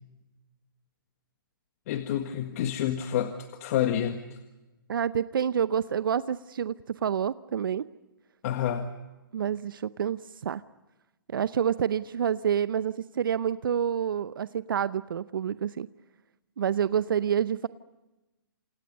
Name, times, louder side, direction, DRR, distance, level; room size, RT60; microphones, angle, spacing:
voice 1, 1.9-4.4 8.4-8.9, left 10 dB, 40° left, 7 dB, 1.7 m, -29 dB
voice 2, 4.9-7.9 9.3-10.6 11.3-15.9 16.6-17.7, right 8 dB, 65° right, 15 dB, 0.7 m, -28 dB
29.5 x 28.0 x 5.3 m, 1.1 s
hypercardioid pair, 145°, 12 cm